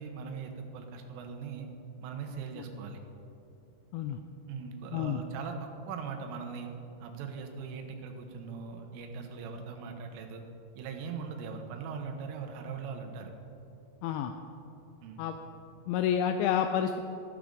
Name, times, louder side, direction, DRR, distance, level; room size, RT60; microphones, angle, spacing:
voice 1, 0.0-1.7 2.0-3.0 4.5-6.7 7.0-10.4 10.8-13.3 15.0-15.2, right 5 dB, 90° right, 4 dB, 3.6 m, -40 dB
voice 2, 14.0-14.3 15.2-15.4 15.9-17.0, left 9 dB, 85° left, 7 dB, 2.7 m, -29 dB
13.5 x 12.5 x 3.8 m, 2.9 s
omnidirectional pair, 5.6 m